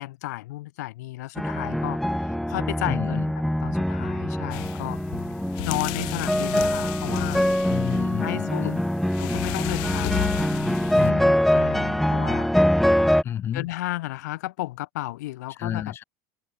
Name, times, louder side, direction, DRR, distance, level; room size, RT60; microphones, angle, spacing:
voice 1, 0.0-3.3 3.6-5.0 5.6-7.5 8.2-8.7 9.2-10.8 11.5-12.5 13.5-15.9, left 17 dB, 85° left, 0.9 m, -33 dB
sound 1, 1.4-13.2, equal, ahead, 0.3 m, -24 dB
voice 2, 2.8-3.3 7.7-8.9 10.9-11.4 13.2-13.7 15.6-16.0, left 9 dB, 25° left, 0.8 m, -30 dB
sound 2, 4.5-11.1, left 34 dB, 55° left, 1.1 m, -34 dB
supercardioid pair, 145°, 9 cm